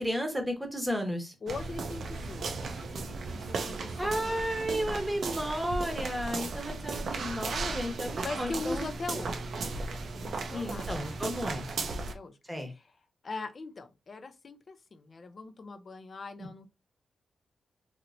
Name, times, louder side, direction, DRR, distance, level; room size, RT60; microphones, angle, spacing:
voice 1, 0.0-1.3 4.0-8.9 10.5-11.7 12.5-12.7 16.4-16.5, equal, 5° right, 0.9 m, -33 dB
voice 2, 1.4-4.4 4.8-5.0 6.3-6.5 7.7-7.9 8.2-9.6 10.1-11.2 11.8-12.4 12.7-12.8 13.2-16.7, left 3 dB, 45° left, 0.5 m, -41 dB
sound 1, 1.5-12.1, right 3 dB, 75° right, 0.5 m, -36 dB
3.0 x 2.9 x 2.5 m
cardioid pair, 100°, 0 cm